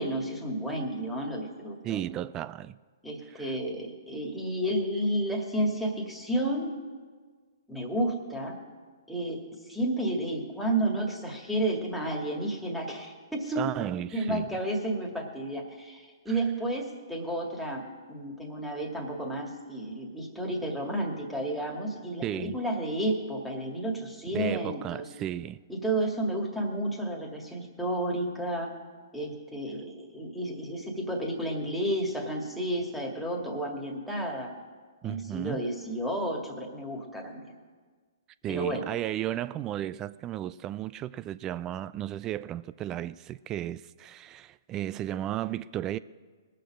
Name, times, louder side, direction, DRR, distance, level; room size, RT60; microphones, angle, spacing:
voice 1, 0.0-2.0 3.0-6.7 7.7-8.5 9.1-9.4 9.7-13.7 14.1-17.8 18.1-25.1 25.7-28.7 29.1-34.5 35.0-37.5 38.5-38.8, right 1 dB, ahead, 2.0 m, -31 dB
voice 2, 1.8-2.8 3.3-3.5 13.6-14.5 16.3-16.4 22.2-22.6 24.3-25.6 35.0-35.6 38.4-46.0, right 12 dB, 25° right, 0.3 m, -34 dB
20.0 x 6.8 x 6.3 m
hypercardioid pair, 125°, 2 cm